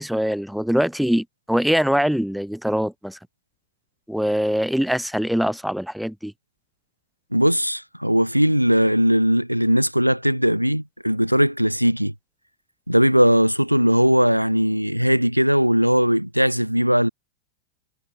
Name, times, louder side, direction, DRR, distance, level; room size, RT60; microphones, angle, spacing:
voice 1, 0.0-3.2 4.1-6.3, equal, ahead, 1.4 m, -23 dB
voice 2, 7.3-12.1 12.9-17.1, equal, 90° right, 3.6 m, -19 dB
figure-of-eight pair, 90°, 0 cm